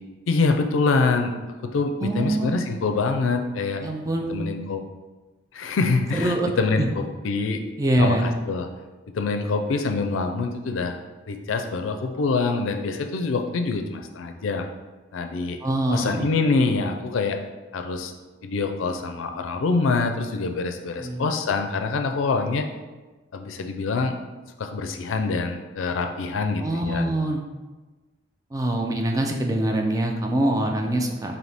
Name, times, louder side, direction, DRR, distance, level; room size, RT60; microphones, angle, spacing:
voice 1, 0.3-1.3 1.6-3.8 4.3-4.8 5.5-7.6 8.0-8.7 9.1-11.0 11.3-14.6 15.1-15.6 15.9-17.4 17.7-18.1 18.4-22.7 23.3-24.2 24.6-27.1, left 4 dB, 90° left, 5 dB, 0.4 m, -25 dB
voice 2, 2.0-2.5 3.8-4.4 6.1-6.5 6.8-6.9 7.8-8.3 15.6-16.3 21.0-21.3 26.6-27.4 28.5-31.4, right 1 dB, 20° right, 2 dB, 0.3 m, -24 dB
4.0 x 2.7 x 3.4 m, 1.2 s
head